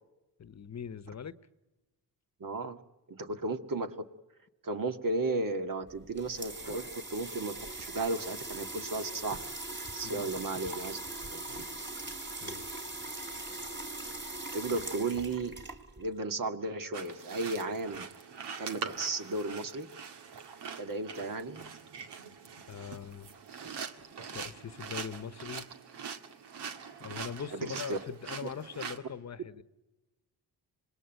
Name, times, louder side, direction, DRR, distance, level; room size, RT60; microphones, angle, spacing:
voice 1, 0.4-1.3 10.0-10.3 11.5-11.6 12.0-12.1 12.4-13.1 22.7-23.3 24.3-25.7 27.0-29.6, left 7 dB, 40° left, 1.1 m, -42 dB
voice 2, 2.4-2.8 3.1-4.0 4.6-9.4 9.9-11.0 11.3-11.7 14.5-15.6 16.0-18.1 18.6-19.9 20.8-21.7 27.5-28.0, right 2 dB, 55° right, 2.0 m, -34 dB
sound 1, 5.9-16.2, right 2 dB, 25° right, 2.8 m, -41 dB
sound 2, 16.9-29.0, right 6 dB, 80° right, 2.1 m, -43 dB
26.0 x 20.5 x 9.0 m
cardioid pair, 80°, 40 cm